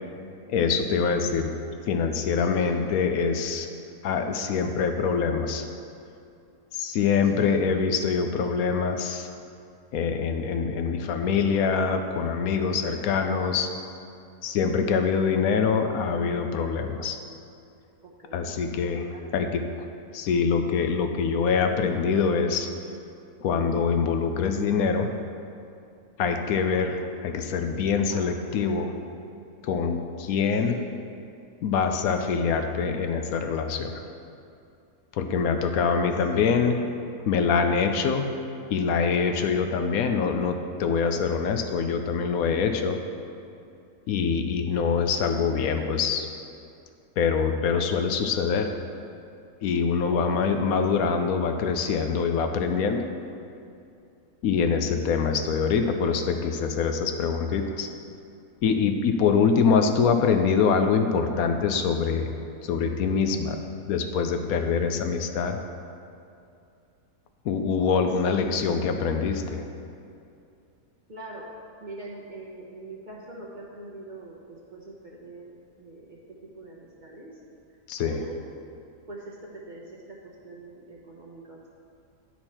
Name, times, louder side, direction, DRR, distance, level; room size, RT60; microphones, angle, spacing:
voice 1, 0.5-1.5 1.9-3.7 4.0-5.6 6.7-9.3 9.9-13.7 14.4-17.2 18.3-19.1 19.3-19.6 20.1-22.7 23.4-25.1 26.2-28.9 29.6-30.8 31.6-34.0 35.1-36.8 37.3-38.3 38.7-43.0 44.1-46.3 47.2-48.7 49.6-53.1 54.4-57.9 58.6-62.3 62.6-63.6 63.9-65.6 67.4-69.6 77.9-78.2, left 5 dB, 75° left, 6 dB, 1.0 m, -24 dB
voice 2, 2.4-3.0 7.2-7.7 12.6-13.0 18.0-18.5 18.9-19.5 28.1-28.9 30.5-30.8 36.2-36.7 45.5-45.8 50.1-50.3 50.6-50.7 68.2-68.5 71.1-71.4 71.8-76.2 76.5-77.4 78.0-78.4 79.1-80.2 80.4-81.7, right 2 dB, 40° right, -4 dB, 0.8 m, -43 dB
10.5 x 4.4 x 4.3 m, 2.6 s
omnidirectional pair, 1.6 m